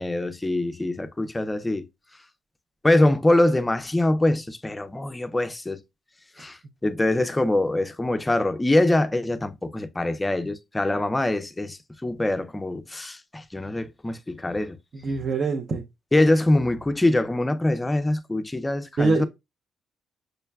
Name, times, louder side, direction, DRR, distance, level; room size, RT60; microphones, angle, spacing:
voice 1, 0.0-1.9 2.8-5.8 6.4-14.8 16.1-19.2, left 1 dB, 15° left, 0.4 m, -24 dB
voice 2, 14.9-15.8 19.0-19.2, right 3 dB, 50° right, 0.5 m, -24 dB
6.3 x 2.1 x 2.2 m
cardioid pair, 90°, 0 cm